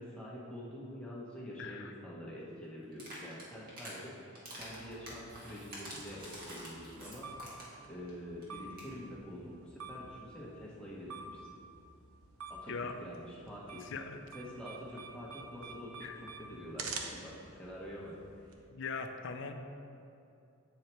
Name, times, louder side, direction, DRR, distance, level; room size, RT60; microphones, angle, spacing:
voice 1, 0.0-7.3 7.8-11.5 12.5-12.7 13.0-13.9 14.3-16.1 16.4-18.1, equal, 5° left, -7 dB, 1.3 m, -46 dB
voice 2, 1.6-1.9 12.7-13.0 13.8-14.2 16.0-16.2 18.7-19.5, left 5 dB, 55° left, 6 dB, 0.5 m, -40 dB
sound 1, 2.9-4.0 4.3-7.8 8.1-8.2 8.4-8.5 8.7-8.9, right 1 dB, 40° right, 1.7 m, -47 dB
sound 2, 4.6-18.5, right 4 dB, 90° right, 0.8 m, -49 dB
8.2 x 4.8 x 4.5 m, 2.7 s
head